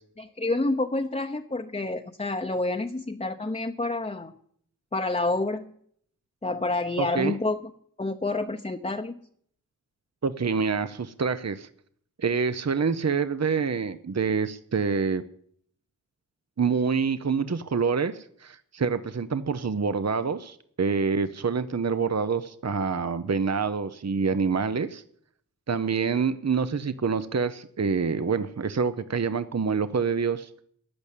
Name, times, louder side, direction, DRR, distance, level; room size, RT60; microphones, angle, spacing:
voice 1, 0.2-4.3 4.9-5.7 6.4-7.6 8.0-9.2, left 2 dB, 20° left, 4 dB, 0.8 m, -28 dB
voice 2, 7.0-7.4 10.2-11.7 12.2-15.2 16.6-25.0 25.7-30.5, right 5 dB, 50° right, 13 dB, 0.7 m, -26 dB
14.0 x 10.5 x 8.3 m, 0.64 s
wide cardioid pair, 55°, 34 cm